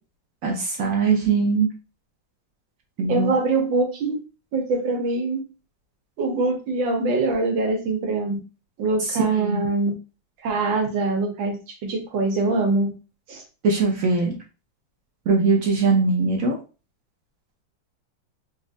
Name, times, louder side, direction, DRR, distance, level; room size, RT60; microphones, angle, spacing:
voice 1, 0.4-1.7 3.0-3.3 9.1-9.6 13.6-14.3 15.3-16.6, right 4 dB, 65° right, 0 dB, 0.9 m, -21 dB
voice 2, 3.1-4.2 4.5-5.4 6.2-8.4 8.8-9.9 10.4-12.9 13.3-13.4, right 3 dB, 80° right, 2 dB, 1.6 m, -23 dB
4.2 x 2.5 x 2.5 m, 0.32 s
omnidirectional pair, 2.0 m